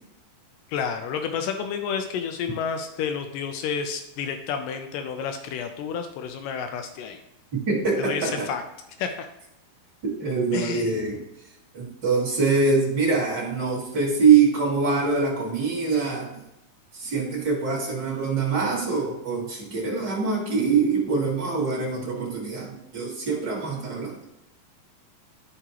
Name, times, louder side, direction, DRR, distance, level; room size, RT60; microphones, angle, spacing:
voice 1, 0.7-7.2 8.0-8.6 9.0-9.3 10.5-10.9, left 7 dB, 85° left, 6 dB, 1.9 m, -30 dB
voice 2, 7.5-8.5 10.0-11.2 11.7-16.3 16.9-24.2, right 5 dB, 35° right, -4 dB, 2.0 m, -24 dB
12.5 x 5.0 x 2.9 m, 0.91 s
omnidirectional pair, 4.5 m